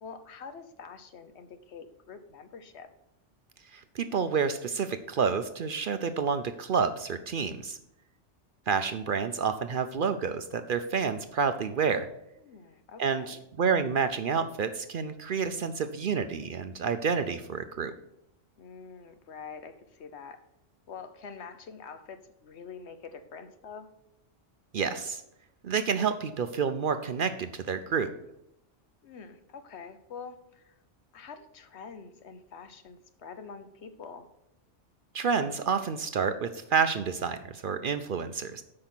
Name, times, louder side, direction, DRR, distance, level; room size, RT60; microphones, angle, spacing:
voice 1, 0.0-2.9 12.4-13.4 18.6-20.4 20.9-23.9 29.0-30.7 31.1-34.3, left 5 dB, 65° left, 9 dB, 1.1 m, -46 dB
voice 2, 3.7-7.8 8.7-12.1 13.0-17.9 24.7-25.2 25.6-28.1 35.1-38.6, right 6 dB, 55° right, 10 dB, 0.6 m, -29 dB
8.6 x 5.5 x 6.0 m, 0.82 s
omnidirectional pair, 1.3 m